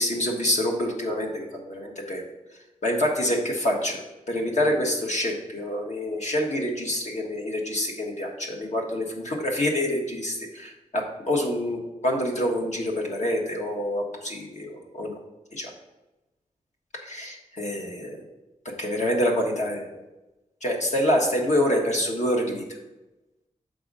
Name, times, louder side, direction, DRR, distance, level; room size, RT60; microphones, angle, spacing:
voice 1, 0.0-2.2 2.8-4.0 4.3-15.2 15.5-15.7 17.0-18.2 18.8-19.8 20.6-22.6, left 1 dB, 60° left, 1 dB, 1.3 m, -26 dB
6.8 x 3.7 x 5.3 m, 1.0 s
wide cardioid pair, 95°, 13 cm